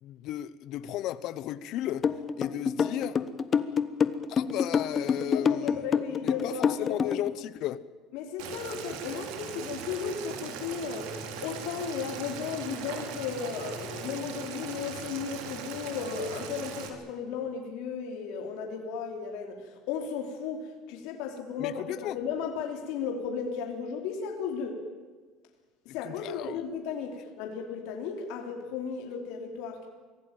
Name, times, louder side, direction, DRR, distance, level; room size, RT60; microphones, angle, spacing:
voice 1, 0.0-2.1 2.4-3.2 4.3-7.8 21.6-22.2 26.0-26.6, left 12 dB, 55° left, 1.1 m, -35 dB
sound 1, 2.0-7.3, left 6 dB, 30° left, 1.0 m, -26 dB
voice 2, 5.3-7.0 8.1-24.8 25.8-29.9, left 6 dB, 75° left, 3.5 m, -35 dB
Boiling, 8.4-16.9, right 6 dB, 85° right, 3.4 m, -39 dB
24.5 x 17.0 x 9.1 m
cardioid pair, 155°, 0 cm